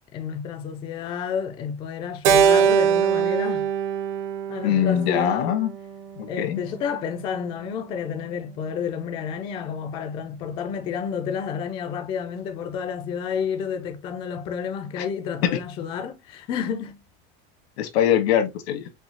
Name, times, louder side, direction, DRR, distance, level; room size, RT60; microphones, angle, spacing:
voice 1, 0.1-3.7 4.5-5.6 6.3-17.0, left 7 dB, 15° left, 0.3 m, -30 dB
Keyboard (musical), 2.2-6.6, right 8 dB, 60° right, 0.9 m, -23 dB
voice 2, 4.6-5.7 6.2-6.6 15.0-15.1 15.5-15.6 17.8-18.8, left 10 dB, 85° left, 1.5 m, -22 dB
5.5 x 2.7 x 2.8 m
supercardioid pair, 170°, 31 cm